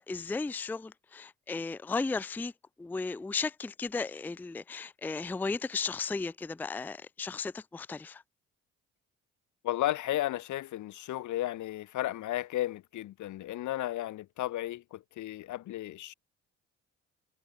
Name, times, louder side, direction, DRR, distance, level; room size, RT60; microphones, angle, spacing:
voice 1, 0.0-2.5 2.8-8.2, left 4 dB, 5° left, 0.4 m, -35 dB
voice 2, 9.6-16.1, left 14 dB, 75° left, 1.0 m, -34 dB
cardioid pair, 90°, 30 cm